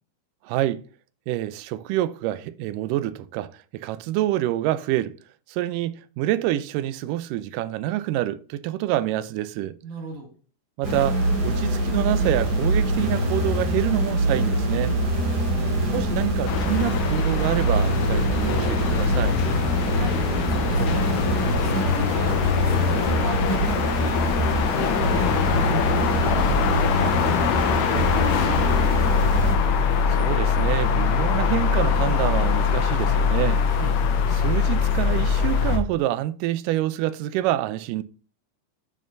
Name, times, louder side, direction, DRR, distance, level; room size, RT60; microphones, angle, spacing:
voice 1, 0.4-0.8 1.3-5.1 5.5-9.8 10.8-14.9 15.9-19.4 30.1-33.6 34.3-38.0, right 14 dB, 90° right, 2.2 m, -27 dB
voice 2, 9.8-10.3 15.1-15.8 19.5-29.3 33.7-33.9, right 3 dB, 70° right, 3.7 m, -37 dB
sound 1, 10.8-29.5, right 1 dB, 35° right, 2.5 m, -24 dB
sound 2, 16.5-35.8, left 6 dB, 85° left, 2.5 m, -23 dB
8.6 x 6.5 x 2.6 m
omnidirectional pair, 3.7 m